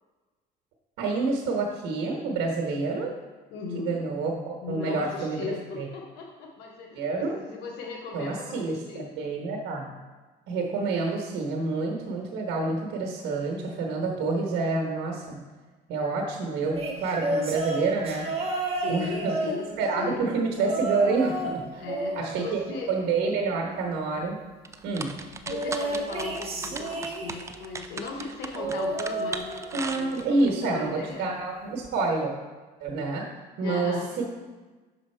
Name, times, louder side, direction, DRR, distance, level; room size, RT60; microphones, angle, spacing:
voice 1, 1.0-3.1 3.7-5.4 5.8-5.9 6.9-7.4 8.1-9.9 10.5-15.4 15.9-18.3 18.9-19.3 19.8-21.8 22.1-22.6 22.9-24.4 24.8-25.1 29.7-32.3 32.8-33.3 33.6-34.2, right 3 dB, 90° right, 0 dB, 1.0 m, -28 dB
voice 2, 3.5-4.0 4.6-9.1 18.7-20.3 21.7-22.9 25.4-31.3 33.6-34.1, left 4 dB, 90° left, 0 dB, 0.8 m, -37 dB
sound 1, 16.7-20.0 20.6-21.6 21.9-23.4 25.5-27.6 28.5-30.0 30.3-30.7 31.8-31.9, right 2 dB, 35° right, 1.1 m, -32 dB
sound 2, 24.6-30.5, right 3 dB, 15° right, 0.4 m, -37 dB
6.2 x 4.9 x 4.3 m, 1.3 s
cardioid pair, 110°, 17 cm